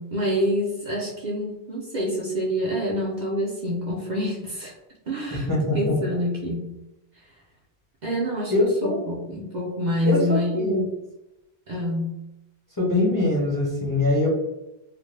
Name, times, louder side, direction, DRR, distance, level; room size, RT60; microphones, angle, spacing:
voice 1, 0.0-4.7 5.1-6.6 8.0-10.9 11.7-12.2, equal, 55° right, -3 dB, 0.6 m, -27 dB
voice 2, 5.3-6.0 8.5-9.0 10.0-10.8 12.8-14.3, left 2 dB, 20° left, -5 dB, 0.6 m, -23 dB
2.5 x 2.1 x 3.1 m, 0.95 s
omnidirectional pair, 1.1 m